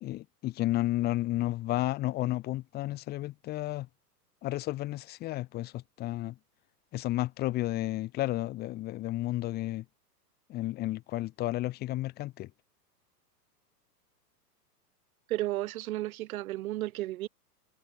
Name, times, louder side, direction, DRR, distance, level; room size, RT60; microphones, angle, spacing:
voice 1, 0.0-3.9 4.4-6.4 6.9-9.8 10.5-12.5, left 16 dB, 20° left, 0.7 m, -32 dB
voice 2, 15.3-17.3, right 16 dB, 60° right, 1.2 m, -33 dB
hypercardioid pair, 115°, 48 cm